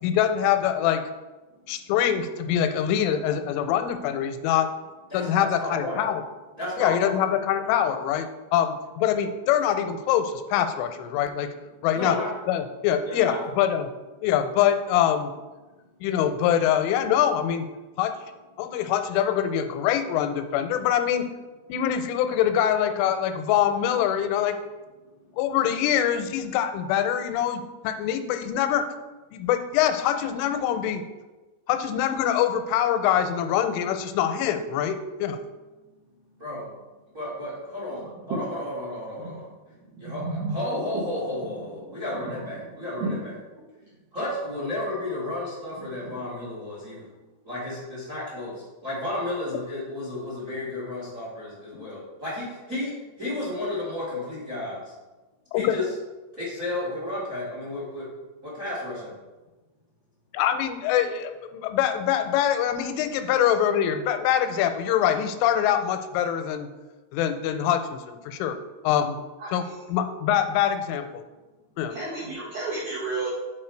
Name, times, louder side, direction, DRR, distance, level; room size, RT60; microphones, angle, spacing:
voice 1, 0.0-1.1 1.7-4.7 5.1-6.2 6.8-11.5 11.8-12.2 12.5-13.9 14.2-15.3 16.0-17.7 18.0-18.2 18.6-21.3 21.7-24.6 25.4-28.9 29.3-31.0 31.7-35.4 55.5-55.8 60.3-66.7 67.1-68.6 68.8-69.2 69.5-69.6 69.9-71.2 71.8-72.0, left 10 dB, 90° left, 8 dB, 3.1 m, -24 dB
voice 2, 5.1-6.0 6.6-7.1 11.9-12.3 13.1-13.4 36.4-36.7 37.1-39.5 40.0-43.2 44.1-47.1 47.4-54.9 55.5-55.8 56.3-58.1 58.4-59.1, left 1 dB, 30° right, -7 dB, 1.4 m, -32 dB
voice 3, 38.0-38.4 39.2-39.5 39.8-40.5 40.9-41.0 41.4-43.2 45.8-46.2 63.4-63.5 69.4-69.8 71.9-73.3, right 3 dB, 75° right, -5 dB, 2.0 m, -34 dB
8.3 x 3.9 x 4.4 m, 1.2 s
omnidirectional pair, 5.5 m